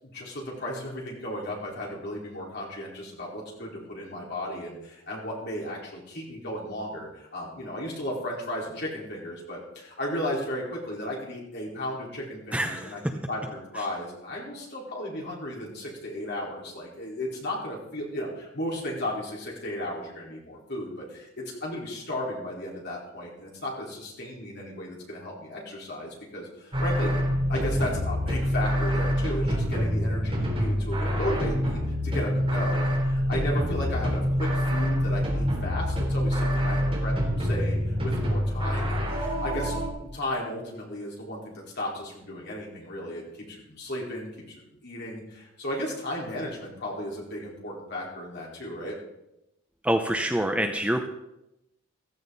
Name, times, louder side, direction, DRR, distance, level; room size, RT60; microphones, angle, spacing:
voice 1, 0.0-27.1 27.5-39.7 40.0-48.9, left 1 dB, 50° left, -3 dB, 4.6 m, -35 dB
voice 2, 12.5-13.1 13.8-13.9 49.8-51.0, right 1 dB, 5° right, 4 dB, 0.7 m, -26 dB
sound 1, 26.7-39.9, equal, 25° right, 3.7 m, -26 dB
15.5 x 14.5 x 4.1 m, 0.88 s
head